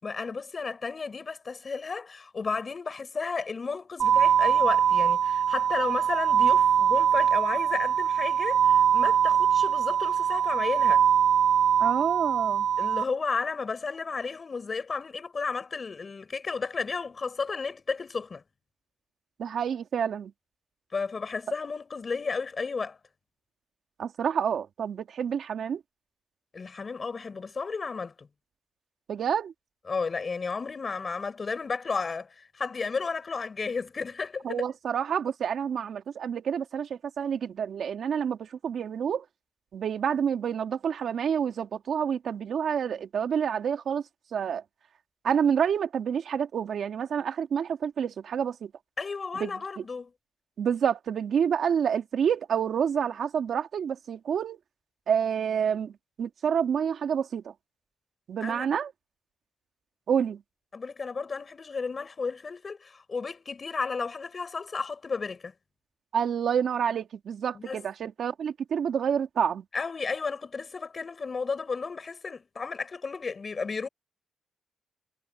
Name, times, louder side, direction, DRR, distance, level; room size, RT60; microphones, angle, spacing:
voice 1, 0.0-11.0 12.8-18.4 20.9-23.0 26.5-28.3 29.9-34.4 49.0-50.1 58.4-58.7 60.7-65.5 67.5-67.8 69.7-73.9, left 4 dB, 35° left, 6.5 m, -33 dB
sound 1, 4.0-13.0, right 8 dB, 80° right, 0.9 m, -23 dB
voice 2, 11.8-12.7 19.4-20.3 24.0-25.8 29.1-29.5 34.4-39.2 39.7-44.0 44.3-44.6 45.2-48.7 49.3-49.8 50.6-54.6 55.1-55.9 56.2-57.5 58.3-58.9 60.1-60.4 66.1-69.6, right 7 dB, 65° right, 2.5 m, -28 dB
cardioid pair, 125°, 0 cm